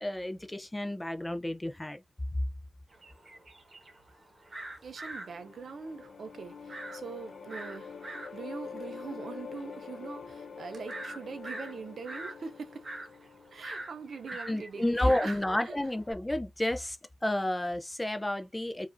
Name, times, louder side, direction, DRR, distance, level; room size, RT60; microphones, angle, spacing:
voice 1, 0.0-2.0 14.5-17.0 17.2-18.9, left 1 dB, 10° left, 0.4 m, -31 dB
sound 1, 2.9-16.1, right 2 dB, 35° right, 1.0 m, -44 dB
voice 2, 4.8-12.9 13.5-15.8, right 5 dB, 60° right, 0.5 m, -43 dB
sound 2, 4.9-14.0, left 6 dB, 65° left, 0.7 m, -46 dB
4.9 x 2.4 x 2.5 m
wide cardioid pair, 170°, 0 cm